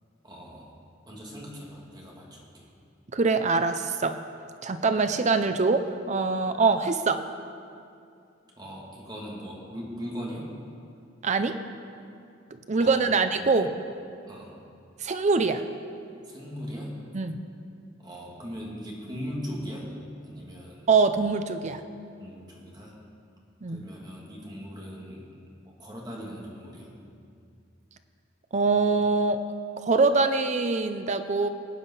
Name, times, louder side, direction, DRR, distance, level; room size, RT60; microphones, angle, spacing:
voice 1, 0.2-0.7 1.1-2.7 8.6-10.5 12.8-13.2 14.3-14.5 16.2-17.0 18.0-19.9 20.2-20.9 22.2-23.0 23.7-25.3 25.6-26.9, equal, 20° right, -3 dB, 2.4 m, -39 dB
voice 2, 3.1-4.2 4.6-7.2 11.2-11.6 12.7-13.7 15.0-15.6 17.1-17.4 20.9-21.8 23.6-23.8 28.5-29.4 29.8-31.5, right 4 dB, 35° right, 9 dB, 0.5 m, -24 dB
20.0 x 9.1 x 5.6 m, 2.5 s
head